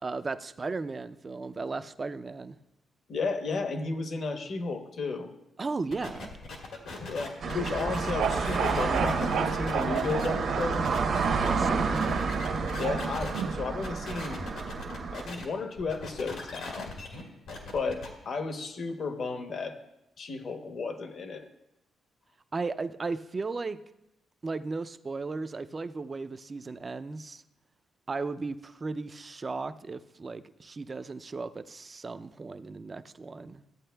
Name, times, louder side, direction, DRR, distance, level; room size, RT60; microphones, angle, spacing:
voice 1, 0.0-2.6 5.6-6.3 11.4-12.2 22.5-23.8 24.4-27.4 28.1-33.6, right 3 dB, 30° right, 12 dB, 0.3 m, -36 dB
voice 2, 3.1-5.3 7.1-10.9 12.8-14.4 15.1-16.9 17.7-19.8 20.2-21.5, left 4 dB, 55° left, 6 dB, 0.8 m, -33 dB
sound 1, 5.9-13.4 13.8-15.4 15.8-18.1, left 3 dB, 85° left, 1.8 m, -40 dB
sound 2, 7.4-15.3, right 4 dB, 60° right, 0.8 m, -30 dB
sound 3, 7.9-14.0, right 6 dB, 90° right, 0.5 m, -33 dB
13.5 x 8.4 x 2.2 m, 0.88 s
cardioid pair, 115°, 0 cm